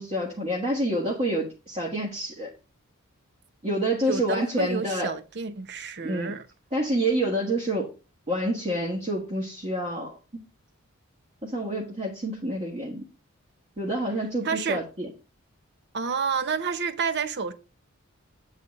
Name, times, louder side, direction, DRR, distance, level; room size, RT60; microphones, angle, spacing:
voice 1, 0.0-2.5 3.6-5.1 6.0-6.3 6.7-7.9 8.3-10.4 11.4-13.1 13.8-15.1, right 1 dB, 30° right, 1.6 m, -28 dB
voice 2, 4.1-6.4 14.4-14.8 15.9-17.5, right 5 dB, 55° right, 0.8 m, -29 dB
8.4 x 4.1 x 5.1 m
head